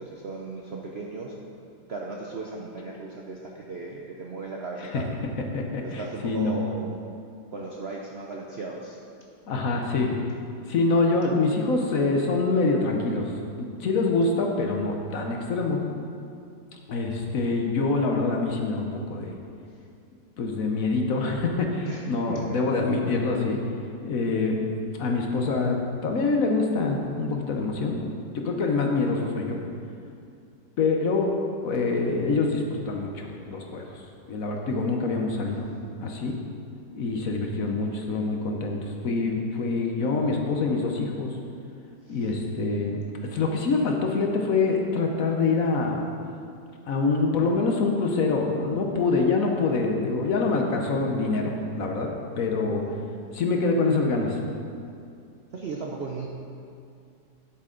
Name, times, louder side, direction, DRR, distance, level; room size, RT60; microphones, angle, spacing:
voice 1, 0.0-1.4 1.9-5.1 5.8-7.0 7.5-9.0 21.9-22.6 42.0-42.3 52.8-53.0 55.5-56.3, right 3 dB, 60° right, -2 dB, 0.7 m, -36 dB
voice 2, 5.5-6.5 9.5-10.3 10.7-13.3 13.6-15.8 16.7-19.3 20.4-23.6 24.0-24.6 25.0-28.0 28.3-29.6 30.8-31.3 31.6-34.0 34.3-35.7 36.0-36.3 36.9-38.8 39.0-41.4 42.1-43.0 43.3-46.0 46.8-52.1 52.4-52.8 53.3-54.4, left 3 dB, 60° left, 1 dB, 1.2 m, -25 dB
9.9 x 7.9 x 3.8 m, 2.4 s
omnidirectional pair, 1.8 m